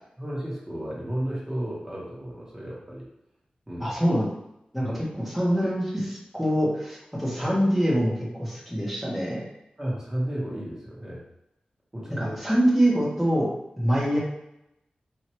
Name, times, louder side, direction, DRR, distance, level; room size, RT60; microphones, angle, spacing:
voice 1, 0.2-3.1 3.7-3.9 4.8-5.0 9.8-11.2 11.9-12.6, right 1 dB, 25° right, -6 dB, 1.3 m, -33 dB
voice 2, 3.8-4.3 4.7-9.4 12.1-13.5 13.8-14.2, equal, ahead, -7 dB, 1.2 m, -24 dB
4.4 x 2.8 x 3.1 m, 0.85 s
wide cardioid pair, 80°, 3 cm